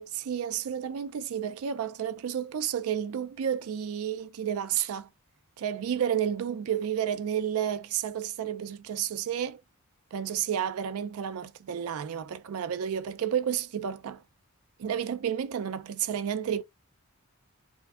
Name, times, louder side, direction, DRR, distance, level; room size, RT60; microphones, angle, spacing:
voice 1, 0.0-5.1 5.6-9.6 10.1-14.2 14.8-16.6, right 9 dB, 70° right, 0.4 m, -31 dB
4.4 x 2.6 x 2.3 m
head